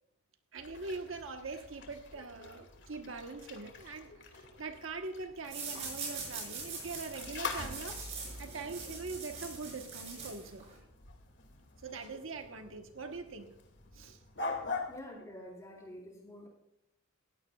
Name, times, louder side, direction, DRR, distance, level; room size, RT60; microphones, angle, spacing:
voice 1, 0.5-10.7 11.8-13.6 13.9-14.2, right 3 dB, 70° right, 5 dB, 1.2 m, -43 dB
sound 1, 0.6-15.0, left 3 dB, 55° left, 2.4 m, -45 dB
sound 2, 5.5-10.8, right 4 dB, 30° right, 6.4 m, -43 dB
voice 2, 14.9-16.5, left 1 dB, 15° left, -1 dB, 4.0 m, -48 dB
18.5 x 16.0 x 2.4 m, 0.84 s
head